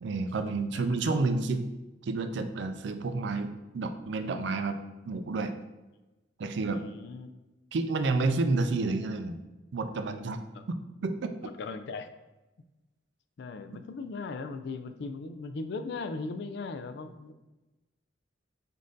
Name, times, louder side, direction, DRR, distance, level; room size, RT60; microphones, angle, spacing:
voice 1, 0.0-1.6 2.0-4.8 5.1-5.5 6.4-6.8 7.7-9.4 9.7-10.4 10.7-11.3, right 3 dB, 70° right, 8 dB, 0.4 m, -30 dB
voice 2, 0.7-1.2 6.7-7.3 10.5-10.6 11.4-12.1 13.4-17.3, left 3 dB, 65° left, 9 dB, 0.4 m, -38 dB
5.3 x 2.6 x 3.8 m, 1.1 s
head